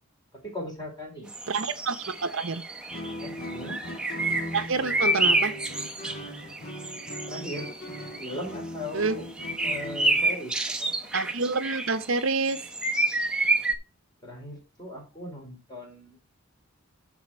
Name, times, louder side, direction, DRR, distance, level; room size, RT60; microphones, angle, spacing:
voice 1, 0.3-1.3 3.2-3.8 7.3-7.7 8.2-9.3 9.6-11.1 14.2-16.2, left 1 dB, 20° left, 3.7 m, -38 dB
sound 1, 1.3-8.5 9.3-13.7, right 2 dB, 5° right, 0.8 m, -29 dB
voice 2, 1.5-2.6 4.5-5.5 8.9-9.2 11.1-12.7, right 4 dB, 60° right, 0.7 m, -28 dB
Guitar, 2.9-10.4, left 1 dB, 45° left, 1.5 m, -39 dB
12.0 x 4.2 x 4.3 m
head